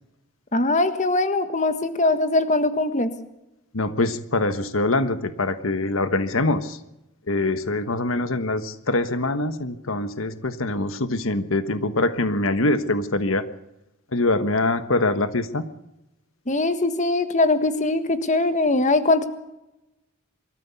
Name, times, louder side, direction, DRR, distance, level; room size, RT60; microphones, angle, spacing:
voice 1, 0.5-3.1 16.5-19.3, left 2 dB, 35° left, 10 dB, 1.6 m, -21 dB
voice 2, 3.7-6.8 7.3-13.4 14.1-15.7, left 2 dB, 75° left, 11 dB, 1.4 m, -24 dB
24.5 x 14.0 x 8.3 m, 0.92 s
head